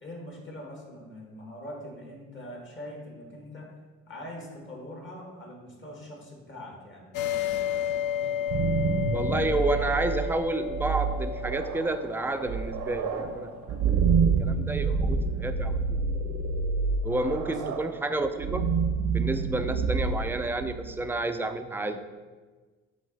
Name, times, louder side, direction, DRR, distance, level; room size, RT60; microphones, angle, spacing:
voice 1, 0.0-3.7 4.1-7.1 17.4-18.0, left 1 dB, 40° left, -1 dB, 1.8 m, -43 dB
sound 1, 7.1-14.3, left 10 dB, 75° left, 0.5 m, -33 dB
sound 2, 8.2-21.1, right 5 dB, 85° right, 0.7 m, -28 dB
voice 2, 9.1-16.0 17.0-18.7 19.1-22.1, right 2 dB, 5° right, 8 dB, 0.3 m, -30 dB
6.2 x 3.0 x 5.4 m, 1.4 s
cardioid pair, 90°, 30 cm